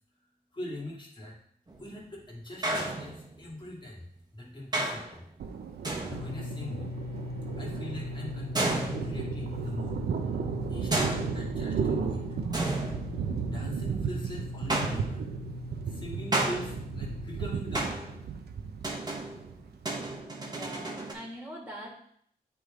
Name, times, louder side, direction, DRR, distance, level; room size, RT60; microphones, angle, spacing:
voice 1, 0.5-1.3 1.8-4.1 4.3-5.3 6.0-6.8 7.6-10.0 10.7-12.2 13.4-15.3 15.9-18.2, left 1 dB, 30° left, -4 dB, 2.4 m, -41 dB
sound 1, 1.7-2.1 2.6-3.6 4.7-5.2 5.8-6.5 8.5-9.6 10.9-11.9 12.5-13.7 14.7-15.4 16.3-17.2 17.7-18.3 18.8-21.1, right 2 dB, 25° right, 1.3 m, -33 dB
Thunder, 5.4-20.2, right 6 dB, 90° right, 0.6 m, -35 dB
sound 2, 6.1-17.5, left 2 dB, 75° left, 1.0 m, -40 dB
voice 2, 20.4-21.9, equal, 10° right, -2 dB, 2.3 m, -43 dB
8.4 x 3.8 x 3.8 m, 0.65 s
cardioid pair, 70°, 16 cm